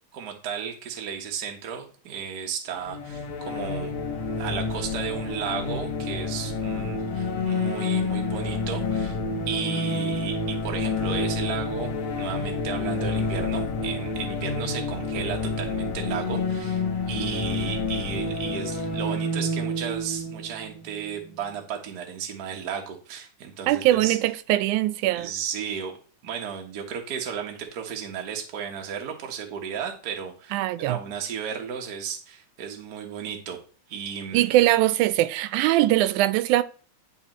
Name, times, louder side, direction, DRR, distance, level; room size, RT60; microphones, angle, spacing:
voice 1, 0.1-3.9 4.4-9.2 9.5-24.2 25.1-25.9 26.2-30.6 30.8-33.6 33.9-34.5, right 7 dB, 65° right, 0.9 m, -34 dB
sound 1, 2.9-21.5, left 3 dB, 55° left, 1.6 m, -29 dB
voice 2, 23.7-25.3 30.5-31.0 34.3-36.6, right 15 dB, 85° right, 2.0 m, -21 dB
10.0 x 4.3 x 3.0 m
omnidirectional pair, 3.5 m